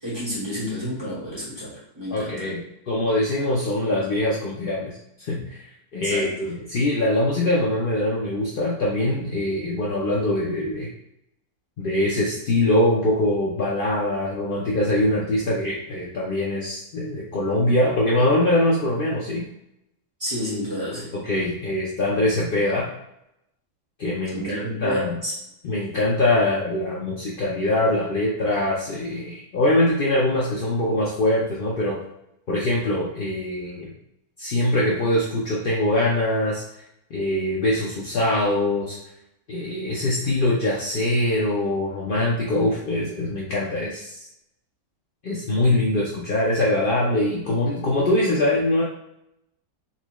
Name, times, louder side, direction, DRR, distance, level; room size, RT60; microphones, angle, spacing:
voice 1, 0.0-2.5 6.0-6.3 20.2-21.1 24.3-25.3, equal, 20° right, -8 dB, 1.0 m, -30 dB
voice 2, 2.1-10.9 11.8-19.4 21.2-22.9 24.0-25.2 25.6-32.0 32.5-33.9 34.4-36.6 37.1-39.0 39.5-44.3 45.2-48.8, left 1 dB, 75° left, -5 dB, 0.5 m, -23 dB
4.1 x 2.2 x 3.0 m, 0.81 s
omnidirectional pair, 1.6 m